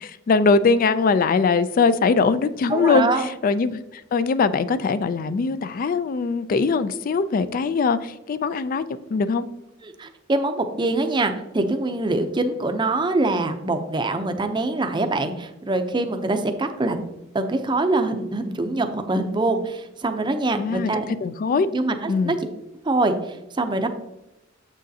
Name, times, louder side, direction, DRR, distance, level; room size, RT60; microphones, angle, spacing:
voice 1, 0.0-3.8 4.1-8.8 9.1-9.4 20.5-20.9 21.2-21.7 22.1-22.4, left 4 dB, 45° left, 14 dB, 0.3 m, -21 dB
voice 2, 2.7-3.3 9.8-17.0 17.3-21.1 21.7-22.4 22.8-23.9, right 2 dB, 25° right, 7 dB, 0.5 m, -24 dB
7.5 x 6.3 x 2.7 m, 0.92 s
head